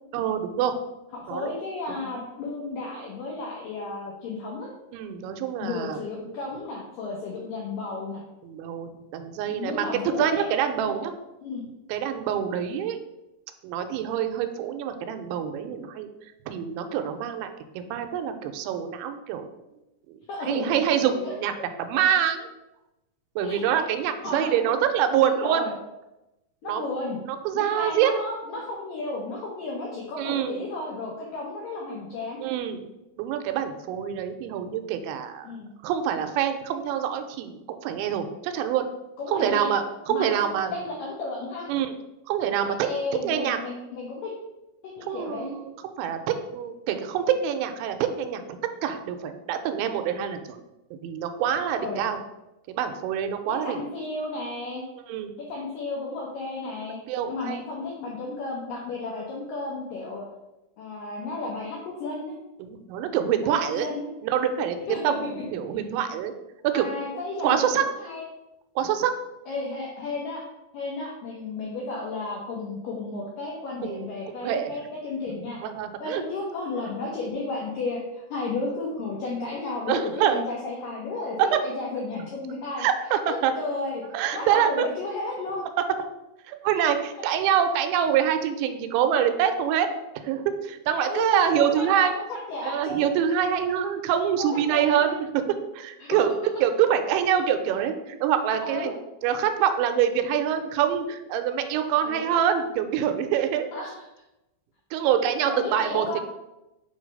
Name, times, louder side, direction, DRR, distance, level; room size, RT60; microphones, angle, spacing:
voice 1, 0.1-0.7 1.3-1.5 1.9-2.0 4.9-6.0 8.4-9.9 10.2-11.1 11.9-13.0 13.6-16.1 16.5-17.5 17.8-19.5 20.1-20.2 20.5-21.5 21.8-22.4 23.4-25.6 26.7-26.8 27.3-28.1 30.2-30.6 32.4-32.8 33.2-35.5 35.8-38.9 39.3-40.7 41.7-41.9 42.3-42.9 43.2-43.6 45.0-48.4 48.8-50.6 51.0-52.2 52.7-53.8 55.1-55.3 57.1-57.6 62.6-63.9 64.2-66.3 66.6-66.9 67.4-67.8 68.8-69.1 73.8-74.0 74.4-74.7 75.6-76.2 79.9-80.4 81.4-81.6 82.8-83.5 84.1-84.9 86.5-89.9 90.2-92.2 92.6-95.4 95.7-96.3 96.6-98.9 99.2-103.7 104.9-106.2, right 9 dB, 90° right, 7 dB, 2.9 m, -25 dB
voice 2, 1.1-4.7 5.6-8.2 9.4-10.5 10.8-11.0 11.4-11.6 20.3-20.7 21.2-21.4 23.4-24.0 24.2-24.5 25.2-25.7 26.6-27.2 27.5-32.4 35.4-35.7 39.2-39.7 40.1-41.7 42.6-44.3 44.8-45.6 51.8-52.0 53.5-54.8 55.4-57.0 57.3-60.2 60.8-62.3 63.4-64.1 64.9-65.0 66.7-68.3 69.5-70.4 70.7-75.6 76.0-82.9 83.3-84.1 84.3-85.6 86.8-86.9 91.0-93.0 94.4-95.2 96.0-96.2 98.6-98.9 102.0-102.3 103.7-103.9 105.4-106.2, left 3 dB, 80° left, -3 dB, 1.9 m, -33 dB
7.3 x 3.1 x 5.3 m, 0.95 s
omnidirectional pair, 5.2 m